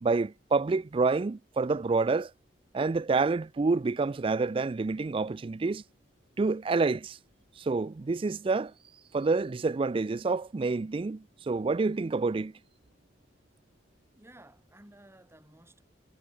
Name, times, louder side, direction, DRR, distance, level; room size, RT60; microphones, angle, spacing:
voice 1, 0.0-2.3 2.7-5.8 6.4-7.2 7.6-8.7 9.1-12.5, right 3 dB, 30° right, 0.4 m, -28 dB
sound 1, 1.4-15.1, right 1 dB, 70° right, 7.6 m, -75 dB
voice 2, 14.1-15.8, right 1 dB, 15° right, 1.5 m, -55 dB
head